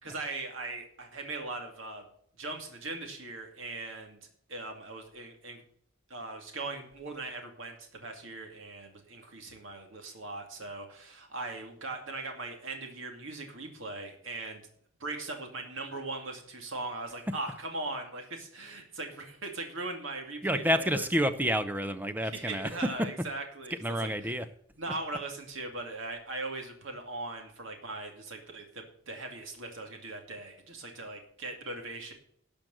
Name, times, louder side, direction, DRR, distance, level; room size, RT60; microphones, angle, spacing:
voice 1, 0.0-2.0 2.4-4.2 4.5-5.6 6.1-14.6 15.0-21.0 22.2-24.3 24.8-32.1, right 2 dB, 60° right, 3 dB, 2.4 m, -40 dB
voice 2, 20.4-23.3 23.7-24.5, equal, 10° right, 11 dB, 0.6 m, -29 dB
12.5 x 5.2 x 7.7 m, 0.64 s
head